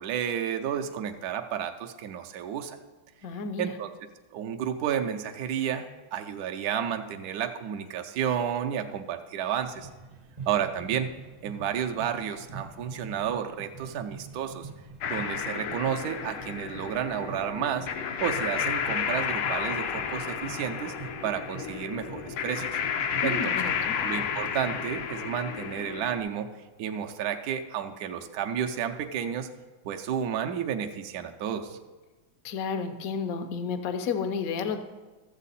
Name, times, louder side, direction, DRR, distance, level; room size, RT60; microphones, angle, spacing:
voice 1, 0.0-2.8 3.6-3.9 4.3-9.9 10.5-11.1 11.4-14.7 15.0-17.9 18.2-20.9 21.2-22.7 23.2-23.6 24.0-26.5 26.8-29.5 29.8-31.8, right 8 dB, 70° right, 4 dB, 0.9 m, -31 dB
voice 2, 3.2-3.7 23.2-24.0 32.4-34.8, left 5 dB, 65° left, 9 dB, 0.8 m, -31 dB
sound 1, 9.6-25.3, right 4 dB, 40° right, 0.6 m, -46 dB
sound 2, 15.0-26.2, left 7 dB, 85° left, 1.6 m, -32 dB
13.5 x 7.4 x 4.1 m, 1.2 s
omnidirectional pair, 2.3 m